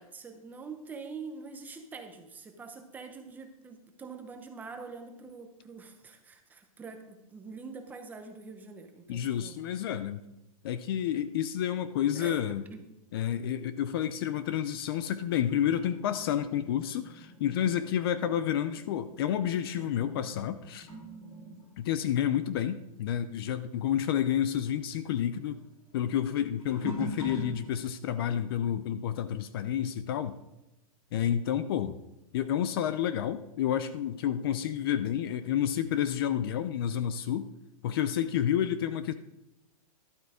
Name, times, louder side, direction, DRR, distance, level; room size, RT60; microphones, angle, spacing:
voice 1, 0.0-9.5 12.1-12.4 12.7-12.8, right 4 dB, 10° right, 6 dB, 0.8 m, -45 dB
voice 2, 9.1-10.2 10.6-12.6 13.1-20.9 21.8-25.6 25.9-30.4 31.1-32.0 32.3-37.5 37.8-39.1, left 10 dB, 40° left, 13 dB, 0.5 m, -30 dB
sound 1, 15.5-23.5 23.7-28.1 28.7-29.0 31.3-31.4 32.2-32.3, right 2 dB, 70° left, 4.0 m, -46 dB
11.5 x 8.0 x 4.9 m, 0.90 s
hypercardioid pair, 165°, 19 cm